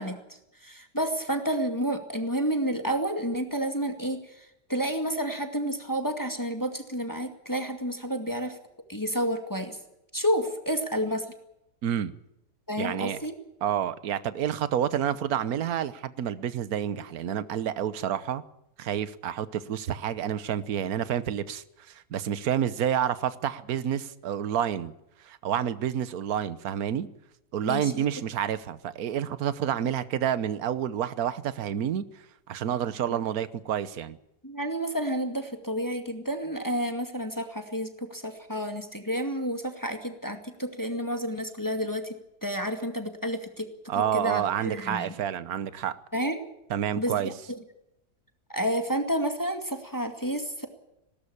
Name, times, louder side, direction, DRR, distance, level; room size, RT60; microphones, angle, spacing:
voice 1, 0.0-8.6 8.9-9.8 10.1-11.3 12.7-13.4 27.6-28.1 33.1-33.2 34.4-43.7 43.9-45.1 46.1-46.4 47.0-47.6 48.5-50.7, equal, 10° left, 6 dB, 2.1 m, -30 dB
voice 2, 12.8-13.2 13.6-18.4 18.8-24.9 25.2-27.1 27.5-32.0 32.5-34.2 43.9-46.0 46.7-47.3, right 9 dB, 65° right, 15 dB, 1.5 m, -29 dB
20.0 x 18.0 x 8.5 m, 0.84 s
omnidirectional pair, 1.8 m